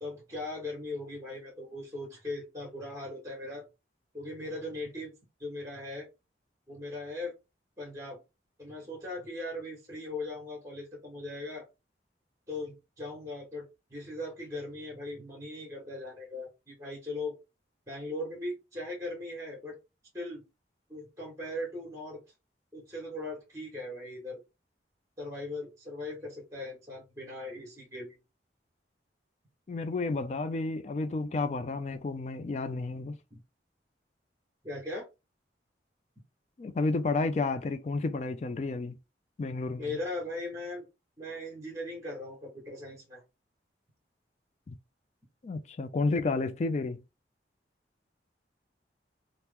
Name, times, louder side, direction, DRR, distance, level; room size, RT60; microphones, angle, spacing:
voice 1, 0.0-3.6 4.1-5.1 5.4-6.1 6.7-7.3 7.8-8.2 8.6-11.6 12.5-17.4 17.9-19.8 20.1-20.4 20.9-22.2 22.7-24.4 25.2-28.2 33.3-33.4 34.6-35.1 39.8-40.8 41.2-43.2, left 2 dB, 15° right, 1.3 m, -39 dB
voice 2, 29.7-33.2 36.6-39.0 39.4-40.0 44.7-44.8 45.4-47.0, left 3 dB, 40° left, 0.3 m, -31 dB
2.9 x 2.0 x 3.4 m
head